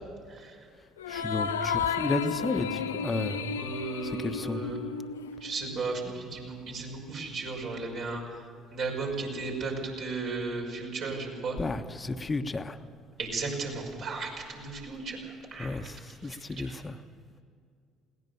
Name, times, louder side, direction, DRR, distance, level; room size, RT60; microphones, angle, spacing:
voice 1, 0.3-0.7 3.4-4.8 5.4-8.4 8.7-11.6 13.2-15.8 16.2-16.7, right 3 dB, 60° right, -1 dB, 5.9 m, -35 dB
sound 1, 1.0-5.7, left 7 dB, 85° left, 0.6 m, -33 dB
voice 2, 1.1-3.4 4.0-4.6 11.6-12.8 15.6-17.0, left 3 dB, 25° left, 8 dB, 1.3 m, -33 dB
21.0 x 18.0 x 7.0 m, 2.3 s
hypercardioid pair, 55°, 0 cm